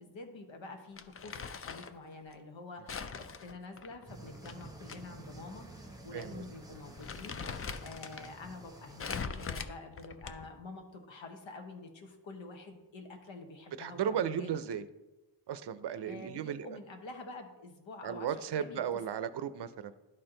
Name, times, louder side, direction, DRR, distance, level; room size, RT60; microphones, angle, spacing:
voice 1, 0.0-7.4 7.8-14.6 16.0-18.8 19.2-19.3, left 3 dB, 85° left, 4 dB, 1.1 m, -48 dB
Crumpling crinkling, 1.0-2.0 2.9-5.0 5.3-5.4 6.2-6.4 6.7-8.3 9.0-10.6, left 5 dB, 35° left, 0.4 m, -41 dB
sound 1, 4.1-9.1, right 2 dB, 10° right, 0.8 m, -50 dB
voice 2, 6.1-6.4 13.8-14.9 15.5-16.7 18.0-20.0, right 8 dB, 65° right, 14 dB, 0.5 m, -35 dB
11.5 x 4.4 x 3.8 m, 1.1 s
wide cardioid pair, 95°, 44 cm